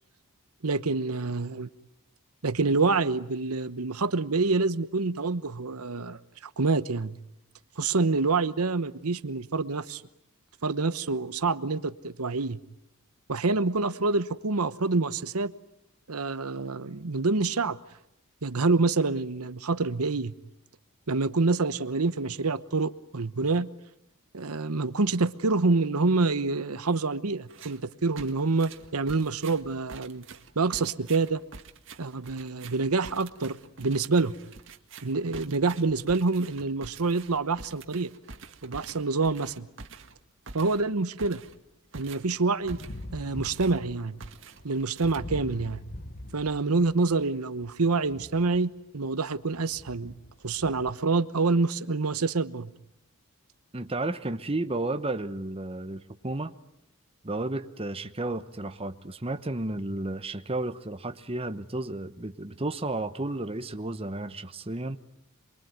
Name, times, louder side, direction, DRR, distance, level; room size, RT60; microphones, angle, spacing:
voice 1, 0.6-1.7 2.4-7.2 7.8-10.0 10.6-12.6 13.3-15.5 16.1-17.8 18.4-20.3 21.1-23.7 24.3-30.2 30.6-31.4 32.0-34.3 35.0-38.1 38.6-39.7 40.5-41.4 41.9-42.8 43.1-44.2 44.6-45.8 46.3-50.1 50.4-52.7, right 3 dB, 80° right, 13 dB, 1.0 m, -27 dB
sound 1, 27.5-27.8 28.2-43.1 43.4-43.9 44.2-45.6, right 4 dB, 55° right, 1.8 m, -47 dB
sound 2, 42.6-47.2 47.6-48.8 49.3-50.9, left 1 dB, 45° left, 1.3 m, -43 dB
voice 2, 53.7-56.6 57.2-65.0, right 2 dB, 25° right, 8 dB, 1.0 m, -32 dB
27.5 x 22.0 x 9.4 m, 0.79 s
head